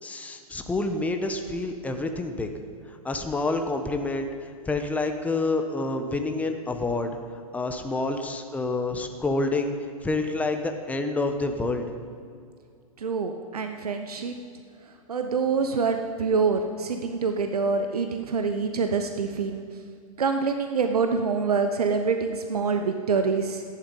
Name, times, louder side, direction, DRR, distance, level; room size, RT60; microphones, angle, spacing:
voice 1, 0.0-2.5 2.9-4.3 4.6-7.2 7.5-9.7 10.0-11.9, left 2 dB, 10° left, 6 dB, 1.1 m, -28 dB
voice 2, 13.0-14.4 15.1-19.6 20.2-23.6, right 5 dB, 80° right, 6 dB, 1.0 m, -26 dB
14.0 x 11.0 x 5.5 m, 2.2 s
hypercardioid pair, 115°, 19 cm